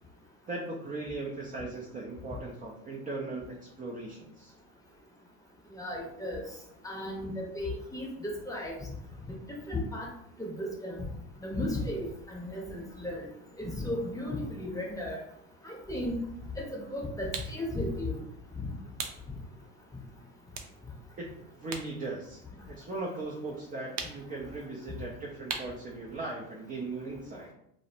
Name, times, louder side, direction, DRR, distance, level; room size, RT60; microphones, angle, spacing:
voice 1, 0.5-4.5 21.2-21.3 21.6-22.4 22.7-27.5, right 2 dB, 20° right, -2 dB, 0.3 m, -38 dB
voice 2, 5.7-6.4 6.8-8.1 8.5-8.8 9.7-10.1 10.4-11.1 11.4-13.3 13.6-15.2 15.6-16.2 16.6-18.2 18.6-18.7, left 1 dB, 10° left, -2 dB, 0.7 m, -35 dB
sound 1, 17.3-17.6 19.0-19.3 19.7-19.9 20.5-21.9 22.2-23.3 24.0-24.4 25.5-25.8, right 5 dB, 75° right, 0.6 m, -38 dB
2.4 x 2.0 x 2.7 m, 0.74 s
supercardioid pair, 95°, 40 cm